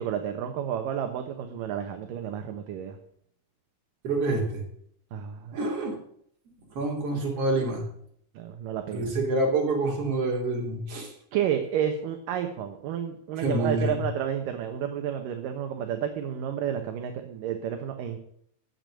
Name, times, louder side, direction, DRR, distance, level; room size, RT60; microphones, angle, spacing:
voice 1, 0.0-3.0 5.1-5.6 8.4-9.1 11.3-18.2, right 9 dB, 70° right, 6 dB, 2.5 m, -31 dB
voice 2, 4.0-4.6 5.5-6.0 6.7-7.8 8.9-11.1 13.4-14.0, right 2 dB, 40° right, 0 dB, 4.0 m, -27 dB
15.5 x 7.0 x 7.6 m, 0.67 s
omnidirectional pair, 4.3 m